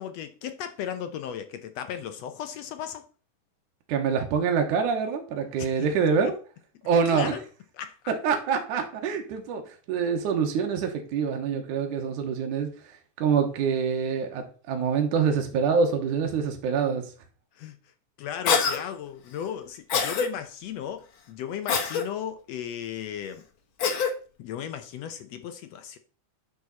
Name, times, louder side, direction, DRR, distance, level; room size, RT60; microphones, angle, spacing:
voice 1, 0.0-3.0 5.6-5.7 7.1-7.4 7.8-8.0 17.6-17.8 18.2-23.4 24.4-26.0, left 9 dB, 75° left, 1.6 m, -36 dB
voice 2, 3.9-6.3 6.8-7.4 8.1-17.1, right 6 dB, 75° right, 2.6 m, -26 dB
Cough, 18.5-18.8 19.9-20.3 21.7-22.0 23.8-24.1, left 6 dB, 55° left, 1.5 m, -24 dB
9.5 x 6.2 x 4.1 m
omnidirectional pair, 3.6 m